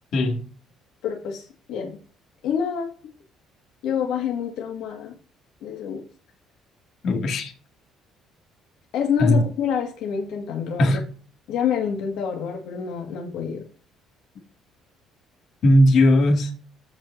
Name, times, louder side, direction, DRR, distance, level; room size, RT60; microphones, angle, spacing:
voice 1, 0.1-0.4 7.0-7.5 9.2-9.4 10.8-11.0 15.6-16.5, left 1 dB, 55° left, 2.5 m, -18 dB
voice 2, 1.0-2.0 2.4-2.9 3.8-5.1 5.6-6.0 8.9-10.9 11.5-13.6, left 7 dB, 75° left, 2.1 m, -27 dB
14.5 x 5.2 x 2.8 m
cardioid pair, 150°, 0 cm